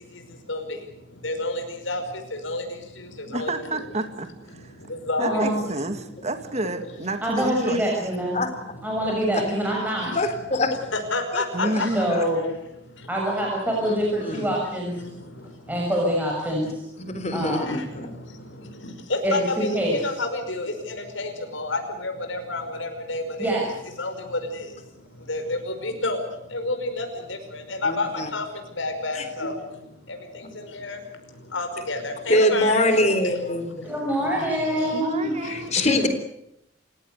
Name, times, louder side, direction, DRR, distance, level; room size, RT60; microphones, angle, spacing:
voice 1, 0.0-3.8 4.5-6.2 7.3-7.8 8.3-10.2 10.9-13.1 13.4-13.5 14.4-14.5 14.9-15.9 17.0-35.9, left 2 dB, 80° left, 6 dB, 5.4 m, -32 dB
voice 2, 3.3-4.7 5.2-7.8 11.5-12.2 34.9-36.1, right 1 dB, 35° right, 8 dB, 1.9 m, -29 dB
voice 3, 5.2-5.6 7.2-8.4 8.8-10.1 11.9-12.5 13.1-14.9 15.7-16.8 17.3-17.8 19.2-19.9 23.4-23.6 33.8-35.4, equal, 10° right, -2 dB, 6.5 m, -25 dB
voice 4, 10.2-10.8 11.3-11.8 12.1-12.2 13.8-14.5 16.6-16.7 17.1-18.1 27.9-28.3 29.2-29.3 32.3-33.7 35.4-36.1, left 1 dB, 35° left, 9 dB, 3.7 m, -24 dB
29.0 x 16.5 x 8.1 m, 0.80 s
head